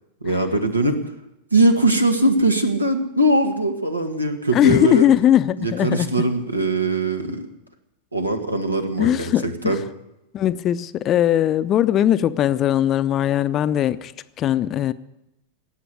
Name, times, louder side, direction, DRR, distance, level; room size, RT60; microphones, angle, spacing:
voice 1, 0.2-1.1 1.5-5.1 5.6-7.5 8.1-9.8, right 1 dB, 80° right, 1.8 m, -21 dB
voice 2, 4.5-6.1 9.0-9.8 10.3-14.1 14.4-14.9, left 11 dB, 30° left, 0.6 m, -19 dB
18.0 x 8.3 x 9.7 m
figure-of-eight pair, 90°, 0 cm